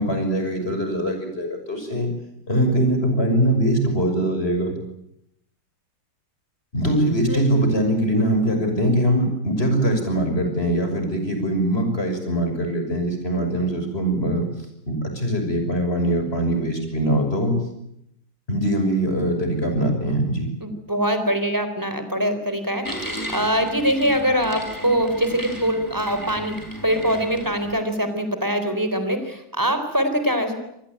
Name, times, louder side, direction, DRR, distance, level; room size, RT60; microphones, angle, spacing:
voice 1, 0.0-2.1 2.5-4.8 6.7-14.5 14.9-17.6 18.5-20.5, right 1 dB, 30° left, 5 dB, 6.4 m, -22 dB
voice 2, 20.6-26.6 26.8-30.5, equal, 10° right, 9 dB, 3.9 m, -23 dB
sound 1, 22.8-27.8, equal, 10° left, 4.3 m, -34 dB
27.0 x 20.0 x 9.1 m, 0.80 s
omnidirectional pair, 2.0 m